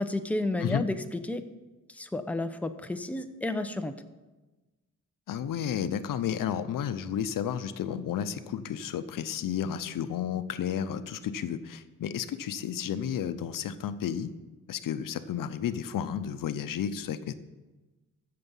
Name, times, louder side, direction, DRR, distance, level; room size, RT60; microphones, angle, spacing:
voice 1, 0.0-1.5 1.9-3.9, left 2 dB, 5° left, 7 dB, 0.8 m, -31 dB
voice 2, 5.3-14.3 14.7-17.3, left 9 dB, 80° left, 11 dB, 0.7 m, -32 dB
15.5 x 6.8 x 5.5 m, 1.2 s
cardioid pair, 95°, 32 cm